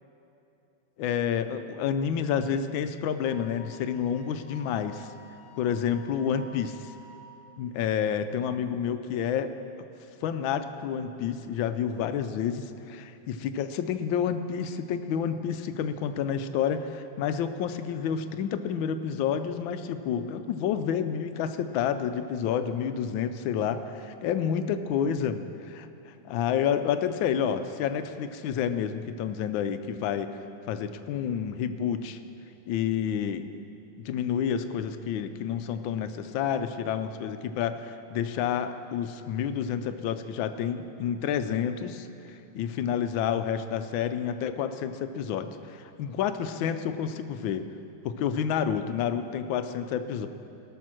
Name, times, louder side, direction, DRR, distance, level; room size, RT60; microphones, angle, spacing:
voice 1, 1.0-5.1 5.6-6.9 7.6-9.5 10.2-30.3 30.7-32.2 32.7-33.4 34.0-42.1 42.5-47.6 48.0-50.3, left 8 dB, 85° left, 10 dB, 1.4 m, -29 dB
Wind instrument woodwind instrument, 3.2-7.2, left 2 dB, 45° right, 1.7 m, -51 dB
18.5 x 6.3 x 6.2 m, 2.9 s
omnidirectional pair, 2.1 m